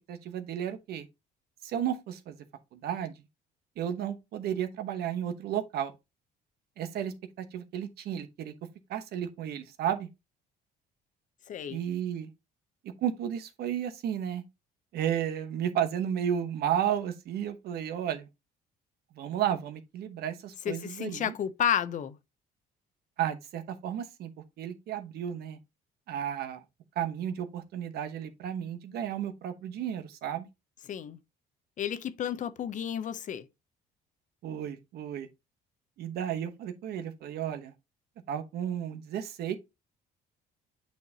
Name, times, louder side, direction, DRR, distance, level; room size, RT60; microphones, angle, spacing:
voice 1, 0.1-1.1 1.6-2.4 2.7-3.1 3.8-5.9 6.8-8.5 8.9-10.1 11.7-12.3 13.0-14.4 14.9-18.3 19.1-21.3 23.2-24.3 24.6-25.6 26.1-26.6 27.0-30.5 34.4-35.3 36.0-37.7 38.3-39.6, right 9 dB, 70° right, 1.0 m, -33 dB
voice 2, 11.5-11.8 20.6-22.2 30.9-31.2 31.8-33.5, left 9 dB, 50° left, 0.6 m, -31 dB
8.2 x 4.5 x 2.8 m
cardioid pair, 110°, 17 cm